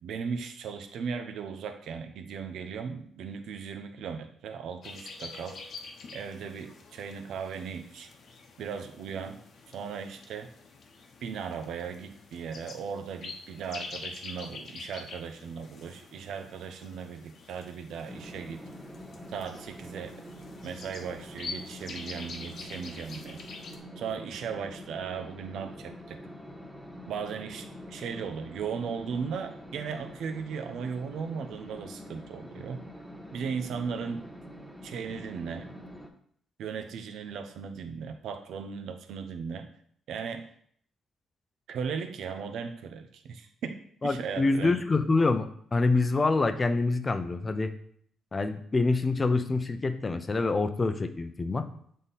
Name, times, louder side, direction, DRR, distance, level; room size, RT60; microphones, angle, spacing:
voice 1, 0.0-5.6 6.1-8.1 8.6-9.4 9.7-10.5 11.2-18.6 19.3-20.1 20.6-23.4 24.0-26.2 27.1-32.8 33.3-34.3 34.8-35.7 36.6-39.7 40.1-40.5 41.7-44.8, right 6 dB, 75° right, 8 dB, 0.7 m, -37 dB
sound 1, 4.8-23.8, left 4 dB, 60° left, 1.0 m, -46 dB
sound 2, 18.1-36.1, equal, ahead, 1.0 m, -46 dB
voice 2, 44.0-47.7 48.3-51.7, left 3 dB, 30° left, 9 dB, 0.6 m, -26 dB
7.2 x 3.7 x 4.1 m, 0.63 s
cardioid pair, 90°, 0 cm